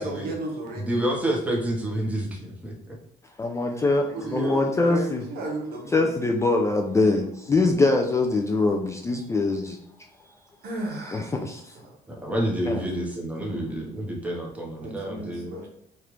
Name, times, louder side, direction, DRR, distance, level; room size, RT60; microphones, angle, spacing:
voice 1, 0.0-1.0 4.1-6.2 10.6-11.3 11.8-12.0 14.8-15.7, right 2 dB, 65° right, -1 dB, 1.0 m, -34 dB
voice 2, 0.8-2.7 4.2-4.6 12.1-15.5, right 1 dB, 10° right, -1 dB, 0.9 m, -29 dB
voice 3, 3.4-5.2 5.9-9.8 11.1-11.6 12.6-12.9 13.4-13.6, left 3 dB, 15° left, 2 dB, 0.3 m, -23 dB
3.2 x 2.4 x 3.0 m, 0.69 s
cardioid pair, 110°, 17 cm